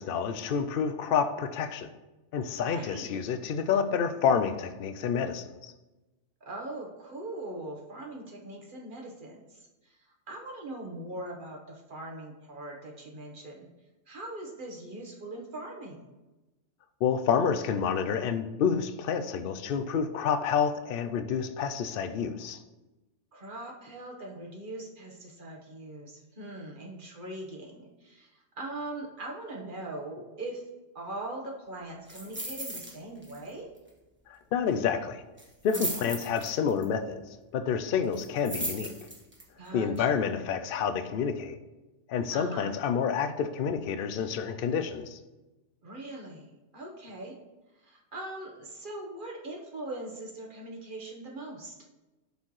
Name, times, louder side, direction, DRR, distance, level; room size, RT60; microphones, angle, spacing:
voice 1, 0.0-1.9 2.3-5.7 17.0-22.6 34.3-35.2 35.6-38.9 39.7-41.6 42.1-45.2, left 7 dB, 60° left, 8 dB, 0.6 m, -29 dB
voice 2, 2.6-3.2 6.4-10.0 10.3-13.7 14.1-16.1 23.3-30.6 30.9-33.7 35.7-36.1 39.6-40.2 42.3-42.7 45.8-47.3 47.8-51.7, right 2 dB, 40° right, -1 dB, 1.2 m, -41 dB
sound 1, 32.1-32.9 33.2-33.5 33.8-33.9 35.4-36.8 38.1-39.4 40.0-40.1, right 1 dB, 10° right, 1.2 m, -36 dB
11.5 x 4.4 x 3.1 m, 1.1 s
omnidirectional pair, 1.4 m